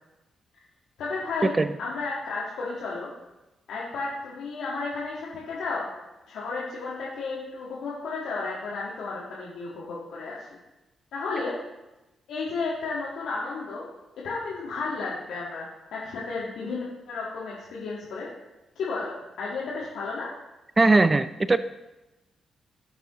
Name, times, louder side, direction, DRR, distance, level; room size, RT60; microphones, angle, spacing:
voice 1, 1.0-3.1 3.7-5.9 6.3-10.5 11.1-11.5 12.3-13.8 14.2-18.3 18.7-20.3, left 3 dB, 70° left, -6 dB, 1.7 m, -33 dB
voice 2, 20.8-21.6, right 3 dB, 30° right, 14 dB, 0.4 m, -19 dB
16.5 x 6.0 x 3.0 m, 1.0 s
hypercardioid pair, 40°, 0 cm